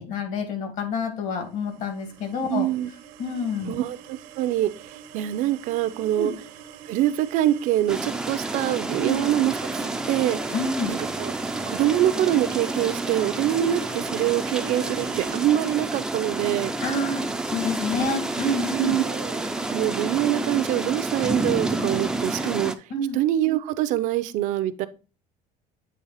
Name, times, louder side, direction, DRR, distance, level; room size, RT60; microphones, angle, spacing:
voice 1, 0.0-2.7 3.2-3.8 6.2-6.3 9.0-9.3 10.5-10.9 16.8-19.0 22.9-23.2, left 2 dB, 60° left, 4 dB, 2.1 m, -28 dB
sound 1, 1.6-15.5, right 8 dB, 85° right, 0.9 m, -43 dB
voice 2, 2.5-2.9 3.7-4.7 5.1-6.3 6.9-10.5 10.9-11.3 11.7-16.7 18.0-18.1 18.7-22.7 23.1-24.9, right 13 dB, 60° right, 12 dB, 0.5 m, -25 dB
sound 2, 7.9-22.7, right 2 dB, 5° right, 0.4 m, -29 dB
8.5 x 3.4 x 4.0 m, 0.33 s
cardioid pair, 165°, 15 cm